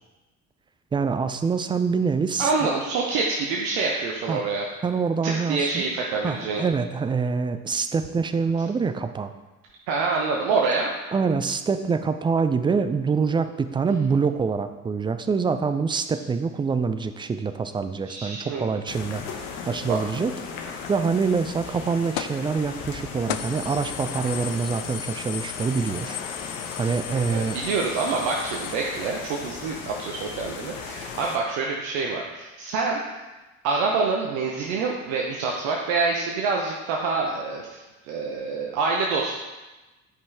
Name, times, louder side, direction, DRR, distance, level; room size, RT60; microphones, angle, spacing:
voice 1, 0.9-2.5 4.3-4.4 4.8-5.8 6.2-9.3 11.1-26.2 26.8-27.6, right 5 dB, 10° right, 9 dB, 0.3 m, -25 dB
voice 2, 2.4-4.6 5.2-6.6 9.9-10.9 18.1-18.7 19.9-20.0 27.3-33.0 33.6-37.8 38.0-39.4, right 4 dB, 60° right, -1 dB, 1.0 m, -26 dB
sound 1, 18.9-31.4, left 6 dB, 65° left, 0.9 m, -37 dB
sound 2, 22.2-22.5 22.9-23.0 23.3-28.7, left 11 dB, 50° left, 0.5 m, -36 dB
9.6 x 5.3 x 3.4 m, 1.1 s
figure-of-eight pair, 50°, 42 cm